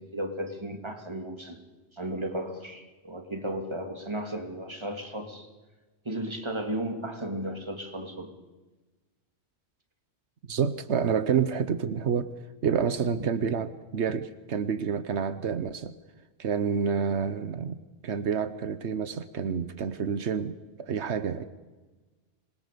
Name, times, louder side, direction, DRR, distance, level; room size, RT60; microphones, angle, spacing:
voice 1, 0.0-1.6 1.9-5.5 6.0-8.3, right 1 dB, 25° right, 4 dB, 2.8 m, -34 dB
voice 2, 10.5-12.3 12.6-15.9 16.4-17.8 18.0-21.4, right 7 dB, 80° right, 12 dB, 1.3 m, -28 dB
26.5 x 21.5 x 6.9 m, 1.2 s
omnidirectional pair, 1.1 m